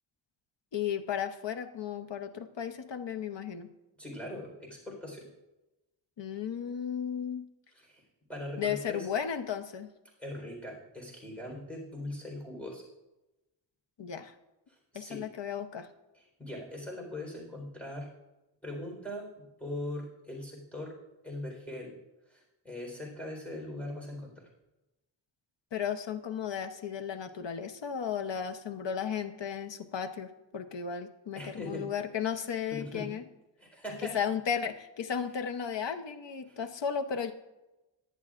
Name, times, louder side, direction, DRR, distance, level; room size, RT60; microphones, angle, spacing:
voice 1, 0.7-3.7 6.2-7.4 8.6-9.9 14.0-14.3 14.9-15.9 25.7-33.2 34.1-37.3, left 7 dB, 65° left, 8 dB, 0.9 m, -34 dB
voice 2, 4.0-5.3 7.9-8.0 8.3-9.1 10.2-12.8 14.9-15.2 16.4-18.1 18.6-20.9 21.2-21.9 22.3-24.3 31.4-31.9 32.7-33.1 33.6-34.2 36.5-36.6, left 1 dB, 5° left, -1 dB, 4.0 m, -40 dB
18.5 x 10.5 x 2.5 m, 1.0 s
wide cardioid pair, 140°, 46 cm